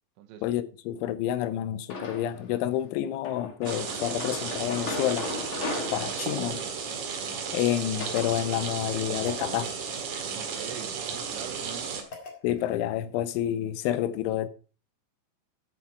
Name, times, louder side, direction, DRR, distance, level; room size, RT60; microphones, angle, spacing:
voice 1, 0.4-5.3 5.9-6.6 7.5-9.7 12.4-14.5, left 12 dB, 90° left, 3.1 m, -29 dB
sound 1, 1.9-2.5 3.2-8.3, left 3 dB, 65° left, 1.2 m, -37 dB
sound 2, 3.7-12.0, right 6 dB, 60° right, 2.4 m, -34 dB
voice 2, 6.3-6.7 10.3-11.9, right 10 dB, 80° right, 3.2 m, -44 dB
sound 3, 9.0-10.3 11.9-12.7, left 3 dB, 45° left, 1.7 m, -48 dB
10.0 x 7.4 x 4.7 m
omnidirectional pair, 5.4 m